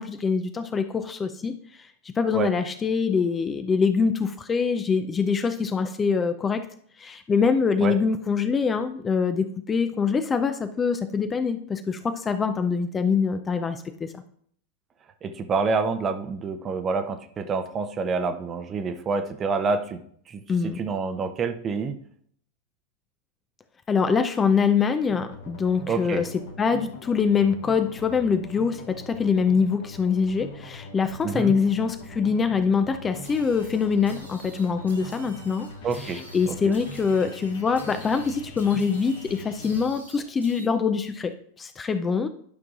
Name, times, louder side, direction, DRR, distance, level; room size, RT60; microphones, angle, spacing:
voice 1, 0.0-6.7 7.0-14.1 20.5-20.8 23.9-26.3 26.6-35.7 36.0-42.3, left 5 dB, 20° left, 9 dB, 0.5 m, -24 dB
voice 2, 15.2-20.0 20.3-21.9 25.9-26.2 31.2-31.5 35.8-36.2, right 4 dB, 25° right, 8 dB, 0.7 m, -27 dB
sound 1, 25.1-39.9, left 2 dB, 60° left, 1.6 m, -42 dB
sound 2, 33.2-40.7, right 2 dB, 85° right, 1.8 m, -49 dB
12.0 x 6.0 x 2.5 m, 0.63 s
figure-of-eight pair, 90°, 0 cm